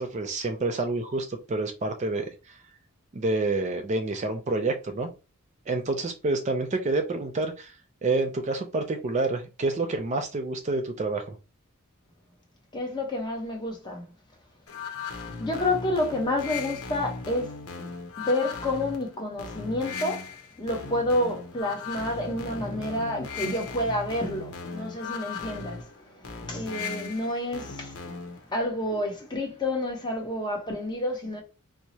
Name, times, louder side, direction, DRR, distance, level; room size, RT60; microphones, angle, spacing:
voice 1, 0.0-2.6 3.1-5.1 5.7-7.7 8.0-11.4, right 3 dB, 30° right, 0.4 m, -28 dB
voice 2, 12.7-14.1 15.4-17.6 18.2-20.3 20.6-31.4, left 1 dB, 20° left, 0.9 m, -29 dB
sound 1, 14.7-28.5, left 4 dB, 80° left, 0.8 m, -38 dB
4.5 x 2.1 x 2.7 m
head